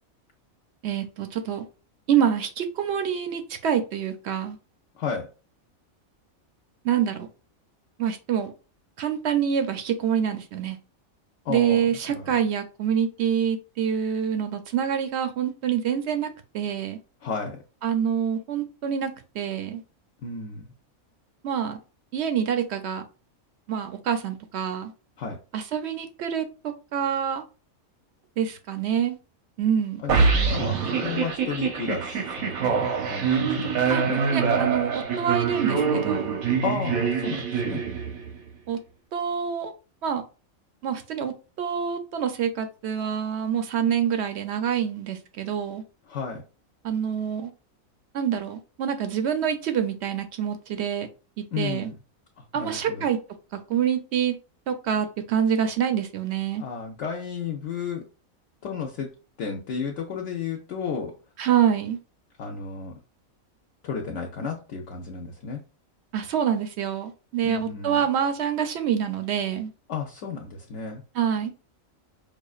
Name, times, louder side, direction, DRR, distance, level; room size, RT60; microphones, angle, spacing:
voice 1, 0.8-1.6 2.1-4.6 6.8-7.3 8.0-8.5 9.0-10.8 11.5-16.3 16.5-17.0 17.8-19.8 21.4-21.8 22.1-23.0 23.7-24.9 25.5-26.4 26.9-27.4 28.4-29.2 29.6-30.0 33.9-34.0 34.3-36.3 38.7-38.8 39.1-39.7 40.0-40.2 40.8-45.8 46.8-47.5 48.1-51.1 51.6-51.9 52.5-53.2 53.7-54.4 54.7-56.6 61.4-62.0 66.1-69.7 71.1-71.5, right 8 dB, 65° right, 0.7 m, -26 dB
voice 2, 4.9-5.3 11.4-12.3 17.2-17.6 20.2-20.7 25.2-25.4 30.0-34.2 36.6-37.8 46.1-46.4 51.5-51.9 52.4-53.1 56.6-58.0 58.6-59.1 59.4-61.1 62.4-62.9 63.8-65.6 67.4-68.0 69.9-71.0, left 5 dB, 65° left, 0.9 m, -33 dB
sound 1, 30.1-38.4, right 5 dB, 85° right, 1.2 m, -25 dB
4.9 x 2.4 x 2.3 m
omnidirectional pair, 1.4 m